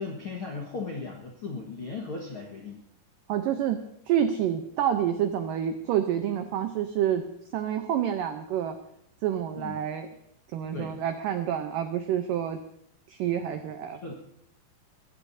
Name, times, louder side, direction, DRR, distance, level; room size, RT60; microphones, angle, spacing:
voice 1, 0.0-2.8 9.5-9.7 10.7-10.9 14.0-14.1, left 4 dB, 70° left, -1 dB, 1.2 m, -36 dB
voice 2, 3.3-3.8 4.1-7.3 7.5-8.8 9.2-10.1 10.5-12.6 13.1-14.0, right 10 dB, 90° right, 7 dB, 1.9 m, -28 dB
22.5 x 15.0 x 2.7 m, 0.73 s
omnidirectional pair, 4.9 m